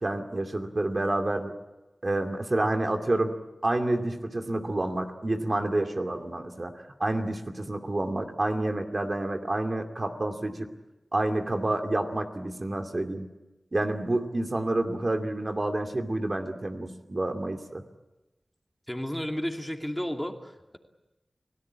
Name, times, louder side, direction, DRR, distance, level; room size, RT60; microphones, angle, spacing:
voice 1, 0.0-1.5 2.0-3.4 3.6-6.7 7.0-10.7 11.1-13.3 13.7-17.8, right 2 dB, 50° right, 4 dB, 2.4 m, -28 dB
voice 2, 18.9-20.8, equal, 10° left, 3 dB, 2.7 m, -32 dB
29.5 x 17.5 x 8.7 m, 1.0 s
wide cardioid pair, 50°, 0 cm